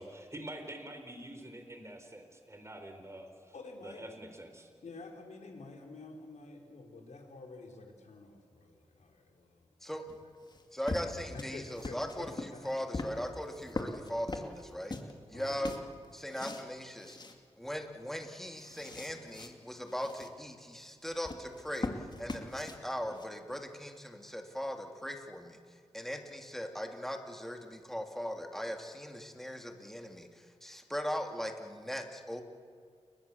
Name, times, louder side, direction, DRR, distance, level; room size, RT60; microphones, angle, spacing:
voice 1, 0.0-3.5 3.8-4.7, right 1 dB, 25° right, 5 dB, 4.2 m, -46 dB
voice 2, 3.5-4.1 4.8-10.2 11.3-13.2 15.3-15.6, left 3 dB, 80° left, 2 dB, 4.4 m, -49 dB
sound 1, 10.1-15.1 15.4-16.7 17.0-17.3 17.8-17.9 18.2-19.5 19.9-20.3 21.0-23.3, left 2 dB, 40° left, 2.6 m, -41 dB
voice 3, 10.7-14.9 15.3-15.7 16.1-17.2 17.6-21.9 22.2-25.6 25.9-32.4, equal, 5° left, 3 dB, 2.9 m, -39 dB
30.0 x 23.0 x 7.3 m, 2.2 s
wide cardioid pair, 75°, 12 cm